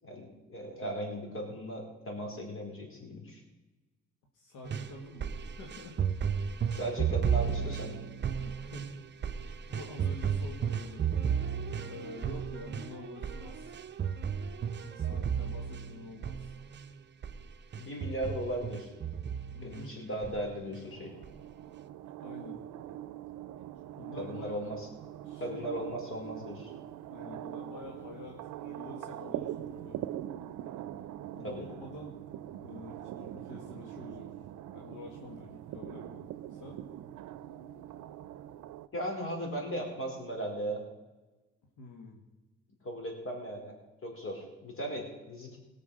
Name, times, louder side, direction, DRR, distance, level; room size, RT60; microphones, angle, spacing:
voice 1, 0.0-3.4 6.7-7.9 9.5-9.6 17.8-18.9 19.6-21.1 24.2-24.9 25.4-26.7 31.4-31.6 38.9-40.8 42.8-43.8 44.0-45.6, equal, 45° left, 1 dB, 4.6 m, -37 dB
voice 2, 4.3-5.3 5.6-6.0 6.8-6.9 7.4-7.7 8.4-8.9 9.7-11.2 11.8-13.7 14.8-16.6 19.5-20.0 22.2-22.6 24.0-24.5 25.2-25.6 27.1-30.0 31.3-32.2 32.6-34.3 34.7-36.2 36.5-36.8 41.8-42.2, left 2 dB, 80° left, 0 dB, 2.1 m, -47 dB
sound 1, 4.6-16.9 17.2-17.4 17.7-19.8 20.2-20.8 21.2-21.3, right 7 dB, 35° right, 0.7 m, -34 dB
sound 2, 20.9-38.9, right 12 dB, 85° right, 0.6 m, -43 dB
18.5 x 6.7 x 6.6 m, 1.1 s
cardioid pair, 90°, 30 cm